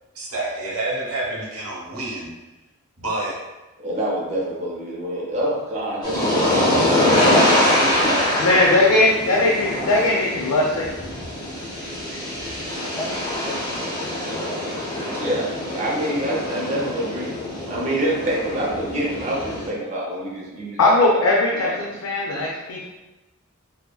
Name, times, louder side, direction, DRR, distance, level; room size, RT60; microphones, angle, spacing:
voice 1, 0.2-2.3 3.0-3.3 7.8-8.3 22.5-22.8, right 2 dB, 65° right, -3 dB, 0.8 m, -29 dB
voice 2, 3.8-7.4 8.0-8.1 12.1-12.2 15.2-21.2 21.6-21.7 22.3-22.4, right 1 dB, 30° right, -4 dB, 0.5 m, -27 dB
sound 1, 6.0-19.7, left 1 dB, 20° left, 0.5 m, -24 dB
voice 3, 8.4-10.8 20.8-22.8, left 2 dB, 70° left, -3 dB, 0.4 m, -19 dB
2.7 x 2.2 x 2.2 m, 1.0 s
head